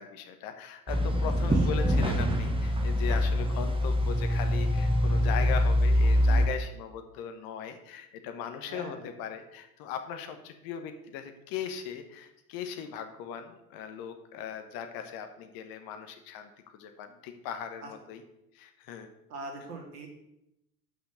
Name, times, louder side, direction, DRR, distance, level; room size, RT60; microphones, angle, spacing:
voice 1, 0.0-18.2 18.5-19.1, left 7 dB, 45° left, 7 dB, 1.2 m, -39 dB
sound 1, 0.9-6.5, equal, 10° right, 1.3 m, -25 dB
voice 2, 8.7-9.0 19.3-20.1, right 2 dB, 75° right, 2 dB, 2.3 m, -41 dB
6.1 x 5.7 x 6.8 m, 0.86 s
hypercardioid pair, 80°, 48 cm